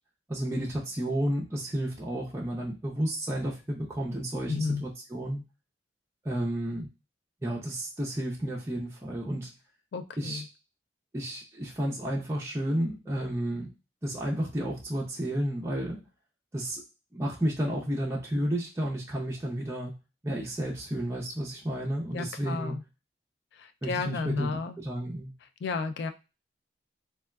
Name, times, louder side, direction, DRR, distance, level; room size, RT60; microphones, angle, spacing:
voice 1, 0.3-5.4 6.2-6.9 7.4-9.5 10.2-10.4 11.1-13.7 14.0-16.0 16.5-16.8 17.1-19.9 20.2-22.7 23.8-24.5 24.8-25.3, right 1 dB, 15° right, -3 dB, 0.5 m, -31 dB
voice 2, 4.5-4.8 9.9-10.5 22.1-22.8 23.5-24.8 25.6-26.1, left 4 dB, 65° left, 8 dB, 0.3 m, -32 dB
3.2 x 2.3 x 2.2 m, 0.28 s
head